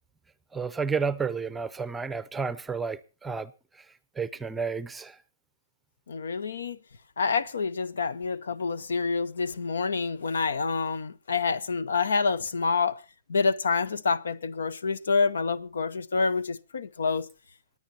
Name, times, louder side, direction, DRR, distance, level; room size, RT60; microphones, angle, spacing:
voice 1, 0.5-3.5 4.2-5.2, right 5 dB, 10° right, 0.6 m, -31 dB
voice 2, 6.1-6.8 7.2-13.0 13.3-17.3, left 4 dB, 85° left, 0.9 m, -27 dB
27.0 x 9.6 x 2.8 m
hypercardioid pair, 150°, 0 cm